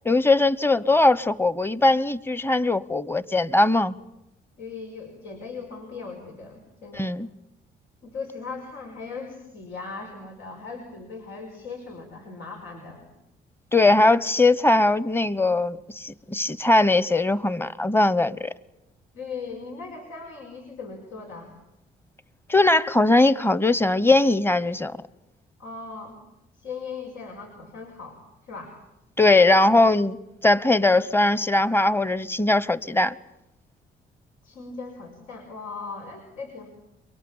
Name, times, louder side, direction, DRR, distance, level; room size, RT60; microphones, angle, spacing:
voice 1, 0.0-3.9 6.9-7.3 13.7-18.5 22.5-25.0 29.2-33.1, left 2 dB, 10° left, 1.0 m, -20 dB
voice 2, 4.6-7.1 8.0-13.1 19.1-21.5 25.6-26.2 26.6-28.8 34.4-36.7, left 4 dB, 85° left, 5.4 m, -38 dB
29.5 x 23.5 x 7.3 m
cardioid pair, 90°, 20 cm